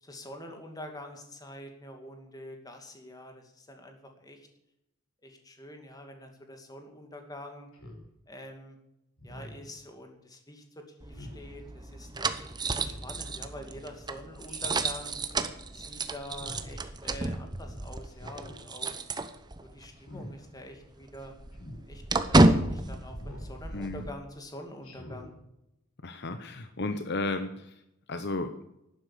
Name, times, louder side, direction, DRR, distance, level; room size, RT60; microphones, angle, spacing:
voice 1, 0.0-4.4 5.2-7.7 8.3-8.8 9.2-15.2 15.7-18.9 19.7-21.3 21.9-25.4, left 1 dB, 15° left, 4 dB, 2.4 m, -46 dB
Speech synthesizer, 7.7-8.1 9.2-9.7 11.1-11.4 12.6-13.1 14.5-14.9 16.2-16.8 18.1-18.6 19.9-20.3 21.5-21.8 23.2-23.5 24.8-25.3, left 1 dB, 85° left, 5.0 m, -46 dB
sound 1, 11.0-19.9 20.2-20.3 20.6-24.1, right 2 dB, 20° right, 0.8 m, -30 dB
voice 2, 26.0-27.5 28.1-28.5, left 2 dB, 50° left, 9 dB, 0.9 m, -33 dB
12.0 x 9.9 x 8.4 m, 0.84 s
head